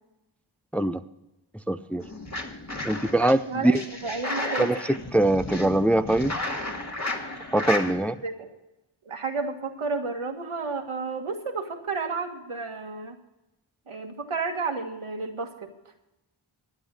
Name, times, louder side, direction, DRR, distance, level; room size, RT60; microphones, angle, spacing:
voice 1, 1.7-2.0 2.8-3.8 4.6-6.3 7.5-8.2, right 1 dB, 5° left, 10 dB, 0.5 m, -23 dB
sound 1, 2.0-3.3 3.8-7.9, left 2 dB, 35° left, 2.1 m, -33 dB
voice 2, 3.5-3.8 4.0-4.7 8.2-8.6 9.1-13.2 13.9-15.7, right 4 dB, 85° right, 3 dB, 1.8 m, -31 dB
12.0 x 9.6 x 6.4 m, 0.96 s
wide cardioid pair, 45°, 48 cm